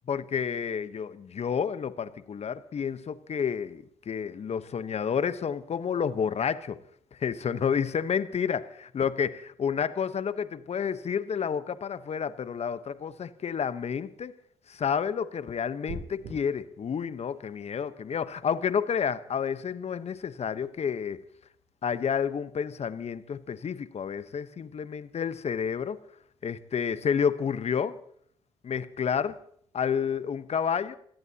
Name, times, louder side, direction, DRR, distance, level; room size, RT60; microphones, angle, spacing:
voice 1, 0.1-6.8 7.1-14.3 14.7-21.2 21.8-26.0 26.4-28.0 28.6-29.4 29.7-31.0, left 7 dB, 45° left, 14 dB, 1.1 m, -30 dB
sound 1, 15.9-16.3, right 4 dB, 75° right, 3.7 m, -38 dB
27.0 x 17.0 x 2.9 m, 0.64 s
hypercardioid pair, 50°, 15 cm